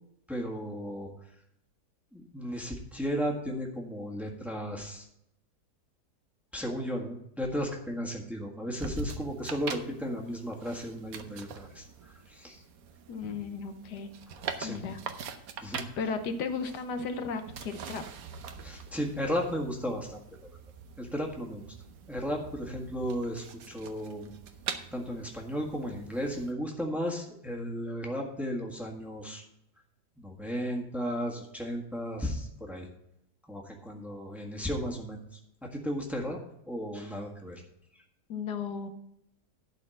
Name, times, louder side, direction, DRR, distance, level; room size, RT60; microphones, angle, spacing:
voice 1, 0.3-1.1 2.1-5.0 6.5-12.6 14.6-14.8 15.6-15.8 18.6-20.2 21.0-21.6 22.1-24.3 24.9-29.4 30.2-32.9 33.5-35.2 35.6-36.4 36.7-37.6, equal, ahead, 0 dB, 1.5 m, -34 dB
sound 1, 8.7-26.5, right 6 dB, 65° right, 1.2 m, -44 dB
voice 2, 13.1-14.1 14.6-15.0 16.0-18.0 38.3-38.9, left 5 dB, 85° left, 8 dB, 1.5 m, -35 dB
12.0 x 4.3 x 7.6 m, 0.77 s
omnidirectional pair, 1.7 m